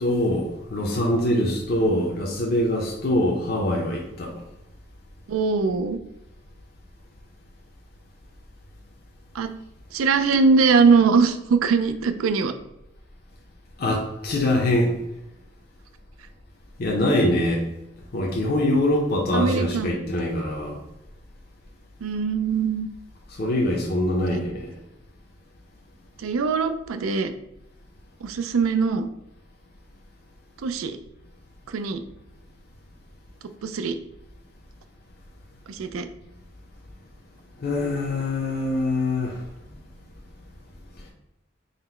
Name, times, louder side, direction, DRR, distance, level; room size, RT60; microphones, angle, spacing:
voice 1, 0.0-4.3 13.8-14.9 16.8-17.6 18.1-20.8 23.3-24.7 37.6-39.4, left 1 dB, 50° left, -1 dB, 0.5 m, -23 dB
voice 2, 5.3-6.0 9.4-9.5 9.9-12.5 19.3-19.9 22.0-22.9 26.2-27.3 28.2-29.1 30.6-31.0 31.7-32.0 33.6-34.0 35.7-36.1, right 5 dB, 85° right, 9 dB, 0.4 m, -21 dB
3.9 x 2.1 x 4.2 m, 0.92 s
head